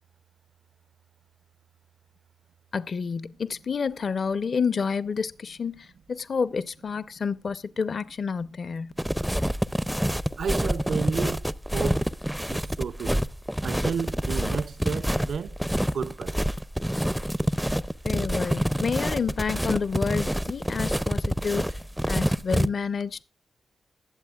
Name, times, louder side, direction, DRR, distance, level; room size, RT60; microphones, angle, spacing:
voice 1, 2.7-8.9 18.0-21.8 22.1-23.2, left 5 dB, 50° left, 0.6 m, -29 dB
sound 1, 9.0-22.7, equal, ahead, 0.4 m, -27 dB
voice 2, 10.4-12.1 12.5-13.3 13.6-15.6 15.9-16.4, right 6 dB, 70° right, 0.5 m, -32 dB
21.0 x 7.8 x 2.3 m
wide cardioid pair, 120°, 0 cm